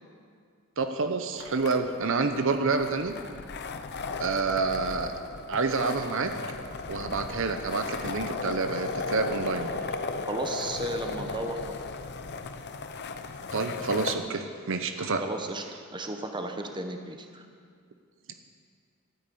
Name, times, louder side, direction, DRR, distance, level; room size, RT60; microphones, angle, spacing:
voice 1, 0.8-3.1 4.2-5.1 5.5-6.3 6.9-9.7 13.5-15.3, right 4 dB, 65° right, 7 dB, 0.8 m, -28 dB
sound 1, 1.4-14.2, left 4 dB, 50° left, 0.7 m, -36 dB
voice 2, 10.3-11.8 15.0-15.6 15.9-17.5, right 1 dB, 20° right, 5 dB, 1.0 m, -34 dB
13.0 x 9.3 x 8.5 m, 2.1 s
head